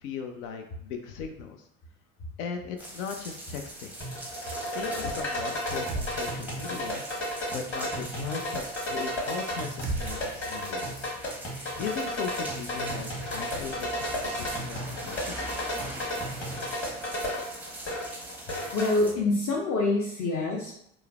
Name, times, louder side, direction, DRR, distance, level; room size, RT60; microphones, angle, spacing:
voice 1, 0.0-1.6 2.4-3.9 4.7-7.0 7.5-11.1 11.8-15.3, left 6 dB, 80° left, 4 dB, 0.5 m, -38 dB
sound 1, 2.8-19.1, right 1 dB, 5° right, 0.5 m, -42 dB
sound 2, 4.0-18.9, equal, 30° left, 1.2 m, -33 dB
sound 3, 5.9-6.8 7.1-7.2 9.8-11.1, right 2 dB, 85° right, 0.5 m, -36 dB
voice 2, 18.7-20.7, left 2 dB, 45° left, -4 dB, 0.7 m, -26 dB
3.0 x 2.0 x 2.3 m, 0.72 s
hypercardioid pair, 70°, 40 cm